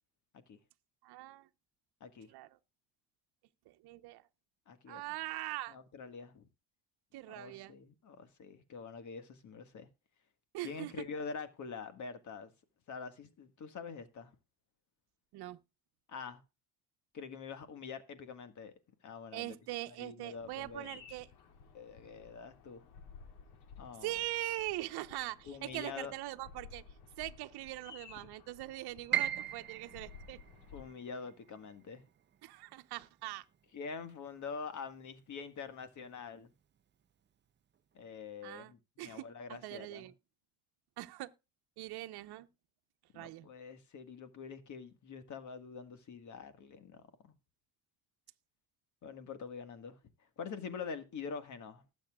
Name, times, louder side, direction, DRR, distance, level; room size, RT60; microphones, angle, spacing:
voice 1, 1.0-1.5 2.3-2.5 3.7-4.2 4.9-5.8 7.1-7.7 10.5-11.1 15.3-15.6 19.3-21.3 24.0-26.8 27.2-30.4 32.4-33.4 38.4-38.7 39.0-40.1 41.0-41.3 41.8-42.5 43.1-43.5, right 17 dB, 70° right, 1.0 m, -42 dB
voice 2, 4.7-5.0 5.7-6.5 7.3-9.9 10.6-12.5 12.9-14.3 16.1-16.4 17.1-18.7 19.0-19.5 20.0-21.0 21.7-22.8 23.8-24.1 25.4-26.1 30.7-32.0 33.7-36.5 37.9-40.1 43.1-47.3 49.0-50.0 50.4-51.8, left 5 dB, 45° left, 1.7 m, -45 dB
Bird vocalization bird call bird song, 20.4-30.9, left 5 dB, 80° left, 2.4 m, -55 dB
Piano, 29.1-35.1 35.4-36.5 36.9-37.0 37.8-38.1, right 11 dB, 25° right, 0.7 m, -40 dB
19.5 x 7.2 x 2.4 m
cardioid pair, 115°, 40 cm